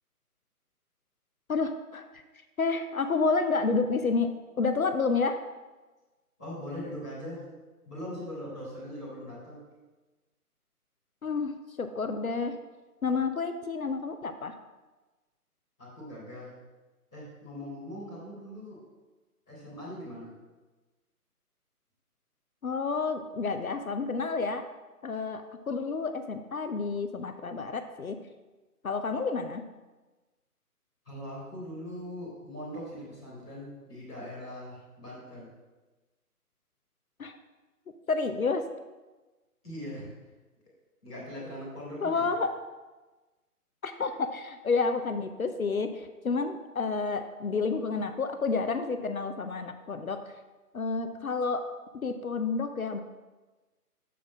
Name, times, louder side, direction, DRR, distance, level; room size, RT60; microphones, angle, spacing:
voice 1, 1.5-2.1 2.6-4.3 4.6-5.4 11.2-12.6 13.0-14.6 22.6-24.6 25.0-28.2 28.8-29.6 37.2-37.4 38.1-38.6 42.0-42.5 43.8-50.2 50.7-51.7 51.9-53.0, left 4 dB, 65° left, 8 dB, 0.6 m, -30 dB
voice 2, 6.4-7.5 7.8-9.6 15.8-16.5 17.1-18.8 19.5-20.3 31.0-35.5 39.6-40.1 41.0-42.3, equal, 5° left, -17 dB, 0.8 m, -41 dB
6.9 x 4.1 x 6.1 m, 1.2 s
figure-of-eight pair, 150°, 46 cm